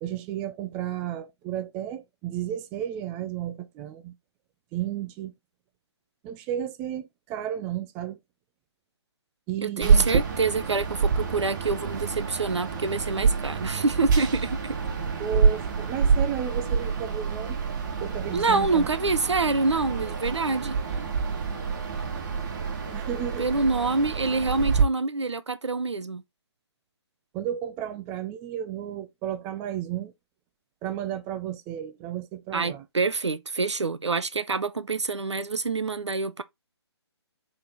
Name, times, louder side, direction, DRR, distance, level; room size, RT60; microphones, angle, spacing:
voice 1, 0.0-4.1 4.7-5.3 6.2-8.2 9.5-10.1 15.2-17.6 18.0-18.9 22.9-23.5 27.3-30.1 30.8-32.8, right 10 dB, 10° right, 0.3 m, -33 dB
voice 2, 9.6-14.8 18.3-20.8 23.4-26.2 32.5-36.4, right 3 dB, 75° right, 0.9 m, -26 dB
sound 1, 9.8-24.8, right 5 dB, 40° right, 1.7 m, -27 dB
6.3 x 3.8 x 3.9 m
figure-of-eight pair, 140°, 15 cm